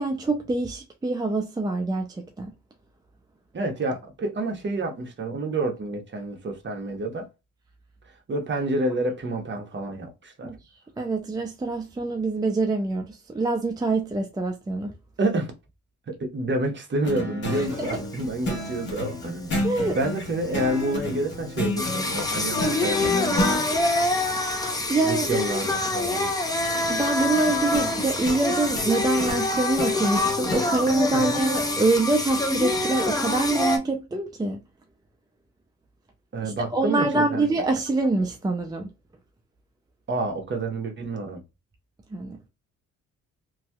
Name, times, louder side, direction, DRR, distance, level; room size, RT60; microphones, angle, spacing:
voice 1, 0.0-2.5 10.4-10.6 11.0-14.9 17.5-17.9 19.6-20.0 24.4-25.4 26.9-34.6 36.4-38.9 42.1-42.4, right 2 dB, 15° right, 0.5 m, -25 dB
voice 2, 3.5-7.3 8.3-10.5 15.2-15.5 16.1-19.5 19.9-23.8 25.0-26.3 31.1-31.4 36.3-37.5 40.1-41.4, right 2 dB, 40° right, 1.1 m, -29 dB
sound 1, 17.0-23.6 27.4-30.7, left 1 dB, 40° left, 1.1 m, -31 dB
Singing, 17.5-33.8, left 2 dB, 10° left, 0.8 m, -26 dB
3.0 x 2.7 x 2.3 m
cardioid pair, 90°, 30 cm